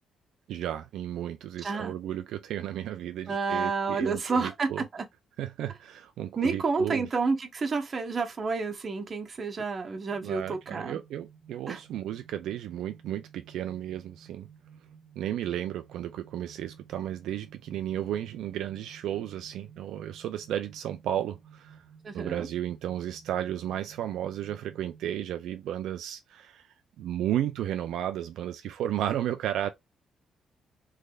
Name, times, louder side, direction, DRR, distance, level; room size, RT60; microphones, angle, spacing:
voice 1, 0.5-4.8 5.4-7.1 10.2-14.5 15.2-21.8 22.1-29.7, right 11 dB, 80° right, 0.3 m, -33 dB
voice 2, 1.6-1.9 3.3-5.1 6.4-11.0 11.7-11.8 22.0-22.5, right 4 dB, 40° right, 0.9 m, -30 dB
sound 1, 10.6-25.1, right 7 dB, ahead, 1.4 m, -55 dB
3.3 x 3.3 x 2.3 m
cardioid pair, 90°, 0 cm